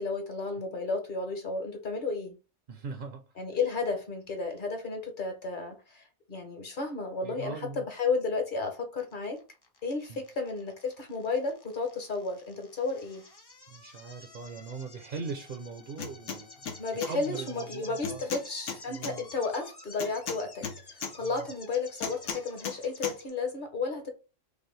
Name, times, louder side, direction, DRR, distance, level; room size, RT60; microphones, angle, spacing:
voice 1, 0.0-2.4 3.4-9.4 9.8-13.2 16.8-24.1, left 4 dB, 45° left, 0.9 m, -33 dB
voice 2, 2.7-3.4 7.2-7.9 10.1-10.2 13.7-16.7 17.0-18.2 18.9-19.3 21.2-21.5, right 4 dB, 55° right, 0.7 m, -40 dB
sound 1, 9.0-23.3, left 3 dB, 30° left, 0.5 m, -51 dB
sound 2, 16.0-16.4 16.7-17.1 18.0-19.1 20.0-21.1 22.0-22.8 23.0-23.2, left 6 dB, 70° left, 1.1 m, -35 dB
5.2 x 2.1 x 3.2 m
omnidirectional pair, 1.3 m